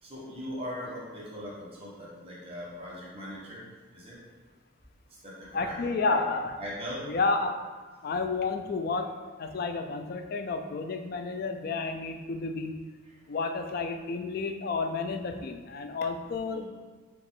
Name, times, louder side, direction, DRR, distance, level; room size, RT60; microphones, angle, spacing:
voice 1, 0.0-3.6 3.9-4.2 5.2-6.3 6.6-7.0 7.8-7.9 16.5-16.7, equal, 30° right, -7 dB, 1.1 m, -40 dB
voice 2, 5.5-6.5 7.1-7.5 8.0-9.1 9.4-12.8 13.3-16.7, left 4 dB, 45° left, 5 dB, 0.3 m, -31 dB
4.8 x 2.5 x 3.6 m, 1.4 s
head